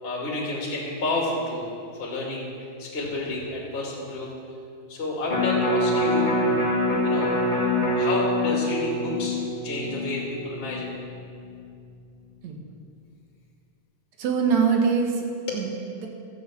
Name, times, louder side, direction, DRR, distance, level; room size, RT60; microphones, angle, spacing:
voice 1, 0.0-2.5 2.8-4.3 4.9-6.3 7.0-7.4 7.9-9.4 9.6-10.9 15.5-15.6, left 2 dB, 20° left, -4 dB, 2.3 m, -30 dB
Electric guitar, 5.3-11.5 11.9-12.0, left 1 dB, 40° left, 0.6 m, -25 dB
voice 2, 14.2-15.3 15.5-16.1, right 6 dB, 60° right, 2 dB, 2.4 m, -24 dB
12.5 x 8.2 x 7.6 m, 2.3 s
omnidirectional pair, 4.0 m